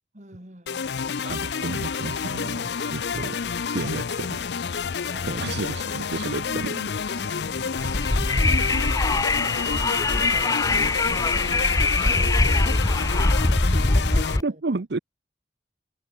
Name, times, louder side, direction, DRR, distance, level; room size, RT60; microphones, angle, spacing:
voice 1, 0.1-1.3 5.0-5.5 6.2-7.8 8.2-8.4 8.7-13.6 14.2-14.6, right 1 dB, 40° right, 4.0 m, -44 dB
sound 1, 0.7-14.4, left 6 dB, 75° left, 0.5 m, -29 dB
voice 2, 1.2-3.4 3.7-4.3 5.2-6.7 8.5-8.6 14.4-15.0, right 3 dB, 70° right, 0.7 m, -31 dB
sound 2, 7.5-9.8, left 1 dB, 60° left, 2.6 m, -38 dB
Wind, 7.8-14.4, left 2 dB, 20° left, 0.6 m, -22 dB
head